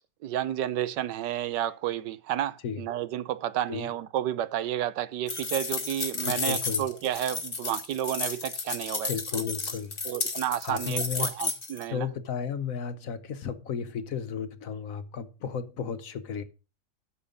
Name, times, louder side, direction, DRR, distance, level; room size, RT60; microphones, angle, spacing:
voice 1, 0.2-9.4 10.0-12.1, right 11 dB, 85° right, 1.4 m, -31 dB
sound 1, 5.3-11.8, left 4 dB, 35° left, 1.7 m, -32 dB
voice 2, 6.2-6.9 9.1-10.0 10.6-11.3 11.9-16.4, left 7 dB, 60° left, 1.2 m, -33 dB
12.5 x 7.0 x 5.3 m
omnidirectional pair, 1.8 m